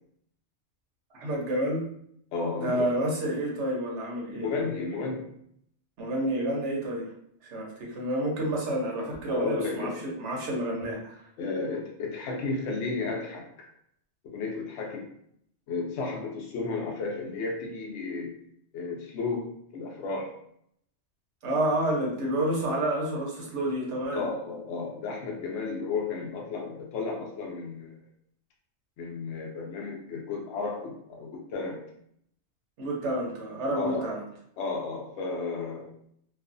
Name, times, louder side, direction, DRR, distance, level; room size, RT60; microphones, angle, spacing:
voice 1, 1.1-1.9 2.6-4.5 6.0-7.1 7.4-11.3 21.4-24.2 32.8-34.2, right 1 dB, 80° right, -2 dB, 1.1 m, -29 dB
voice 2, 2.3-2.9 4.3-5.3 9.3-10.1 11.4-13.7 14.2-15.1 15.7-18.3 18.7-20.3 24.1-28.0 29.0-31.8 33.7-34.1 34.6-35.9, left 4 dB, 75° left, -1 dB, 0.8 m, -33 dB
2.4 x 2.4 x 2.5 m, 0.68 s
omnidirectional pair, 1.2 m